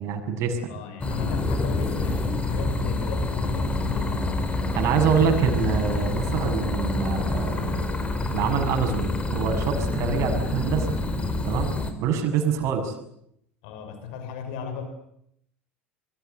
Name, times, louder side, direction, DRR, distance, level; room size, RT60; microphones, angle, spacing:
voice 1, 0.0-0.7 4.7-7.9 8.3-11.0 11.4-11.7 12.0-12.9, right 7 dB, 50° right, 5 dB, 7.0 m, -25 dB
voice 2, 0.7-4.4 12.3-12.6 13.6-14.8, left 7 dB, 60° left, 8 dB, 5.7 m, -34 dB
sound 1, 1.0-11.9, left 2 dB, 20° left, 4.8 m, -27 dB
27.0 x 24.0 x 8.0 m, 0.72 s
figure-of-eight pair, 75°, 6 cm